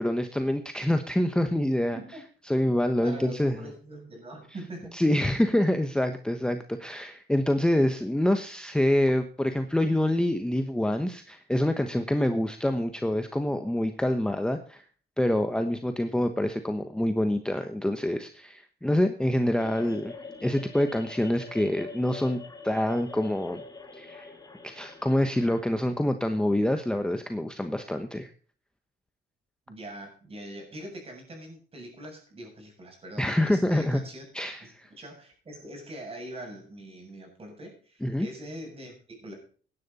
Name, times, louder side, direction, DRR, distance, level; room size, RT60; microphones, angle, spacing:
voice 1, 0.0-2.0 2.5-3.6 4.9-14.8 15.2-20.1 20.4-23.6 24.0-24.3 24.6-28.3 33.2-34.0 34.3-34.9 38.0-38.3, left 1 dB, 5° left, 7 dB, 1.0 m, -26 dB
voice 2, 3.0-5.0 19.6-20.0 29.7-34.2 34.6-39.3, right 1 dB, 30° right, 2 dB, 7.3 m, -43 dB
sound 1, 19.6-25.6, left 4 dB, 20° left, 2.2 m, -44 dB
16.5 x 11.0 x 4.2 m, 0.42 s
cardioid pair, 125°, 19 cm